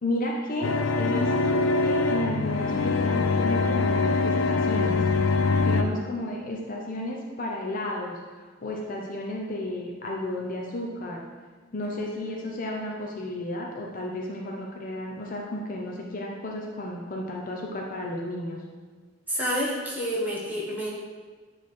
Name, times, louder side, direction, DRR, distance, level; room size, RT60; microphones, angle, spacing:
voice 1, 0.0-5.0 5.6-11.2 11.7-18.6, left 1 dB, 45° left, -1 dB, 0.7 m, -32 dB
sound 1, 0.6-5.8, left 3 dB, 85° left, 0.5 m, -24 dB
voice 2, 19.3-20.9, equal, 10° right, -6 dB, 1.4 m, -29 dB
8.3 x 3.3 x 4.3 m, 1.5 s
head